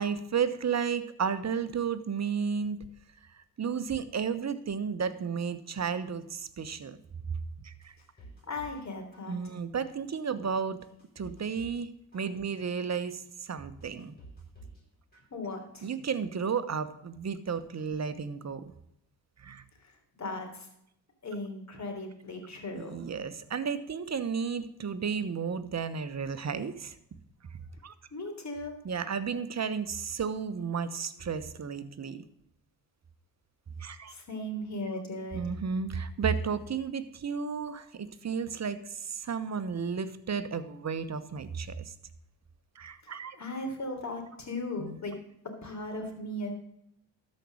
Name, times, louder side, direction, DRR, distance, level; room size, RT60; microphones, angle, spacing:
voice 1, 0.0-2.8 3.3-7.0 7.6-7.9 9.3-10.8 11.2-14.1 15.8-18.7 19.4-19.6 22.7-26.9 27.8-27.9 28.8-32.2 33.8-34.1 35.3-41.9 42.7-43.4 44.8-45.0, right 6 dB, 35° right, 12 dB, 1.1 m, -33 dB
sound 1, 7.8-8.9 9.1-9.7 10.2-10.3 10.8-11.8 12.1-12.7 13.2-13.3 13.8-14.8 15.1-15.7 16.1-16.2, right 2 dB, 20° left, 5.3 m, -52 dB
voice 2, 8.4-9.4 15.3-15.9 19.8-20.7 21.2-23.0 28.1-28.7 34.1-35.5 43.0-45.2 45.6-46.5, left 1 dB, 35° left, 4 dB, 3.5 m, -37 dB
13.0 x 5.4 x 6.3 m, 0.76 s
hypercardioid pair, 55°, 45 cm